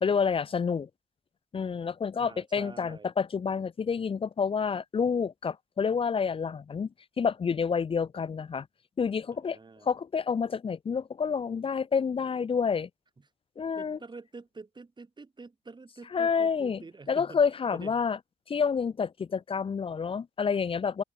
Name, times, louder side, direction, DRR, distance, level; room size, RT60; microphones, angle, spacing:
voice 1, 0.0-0.9 1.5-6.9 7.2-8.7 9.0-12.9 13.6-14.0 16.1-18.2 18.5-21.0, left 6 dB, 30° left, 0.5 m, -29 dB
voice 2, 2.2-3.1 9.3-9.9 13.7-17.4 17.7-18.0, right 3 dB, 25° right, 1.7 m, -47 dB
cardioid pair, 90°, 20 cm